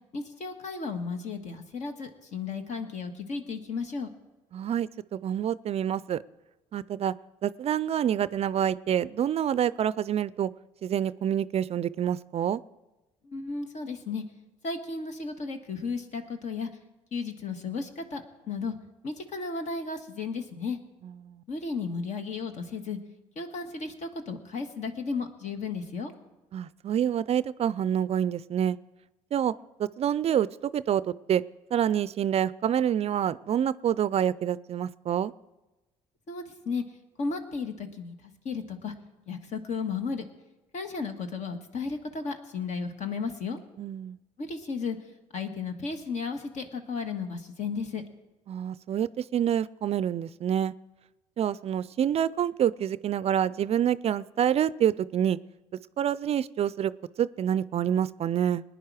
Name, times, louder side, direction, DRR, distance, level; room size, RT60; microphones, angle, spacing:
voice 1, 0.1-4.1 13.2-14.2 14.6-16.7 17.1-18.8 19.0-20.8 21.5-23.0 23.3-26.1 36.3-36.8 37.2-38.9 39.3-40.2 40.7-43.6 44.4-45.0 45.3-48.0, left 4 dB, 55° left, 6 dB, 1.6 m, -34 dB
voice 2, 4.5-6.2 6.7-7.1 7.4-10.5 10.8-12.6 21.2-21.4 26.5-28.8 29.3-29.5 29.8-31.4 31.7-35.3 43.8-44.2 48.5-50.7 51.4-55.4 56.0-56.9 57.2-58.6, right 9 dB, 45° right, 18 dB, 0.4 m, -27 dB
19.5 x 10.0 x 4.9 m, 1.1 s
supercardioid pair, 65°, 14 cm